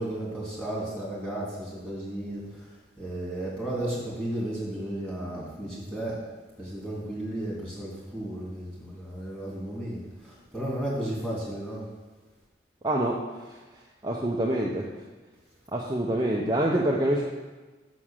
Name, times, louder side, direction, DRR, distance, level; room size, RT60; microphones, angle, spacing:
voice 1, 0.0-2.7 3.0-6.2 6.6-11.8, right 1 dB, 5° left, -6 dB, 3.0 m, -34 dB
voice 2, 12.8-13.2 14.0-14.9 15.7-17.2, right 1 dB, 20° right, -2 dB, 0.7 m, -25 dB
6.3 x 6.3 x 7.3 m, 1.3 s
head